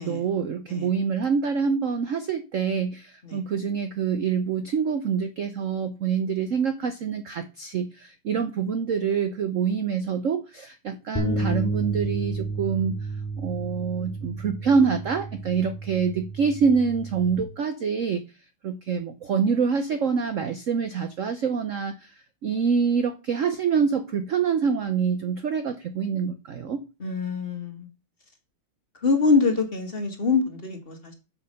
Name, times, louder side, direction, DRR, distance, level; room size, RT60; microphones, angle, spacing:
voice 1, 0.0-13.1 13.4-18.2 18.6-22.1 22.4-26.8, right 6 dB, 75° right, 0.7 m, -26 dB
sound 1, 11.2-17.4, right 2 dB, 10° left, 1.8 m, -31 dB
voice 2, 27.0-27.9 29.0-31.1, left 4 dB, 30° left, 1.5 m, -24 dB
7.5 x 6.4 x 6.5 m
omnidirectional pair, 2.4 m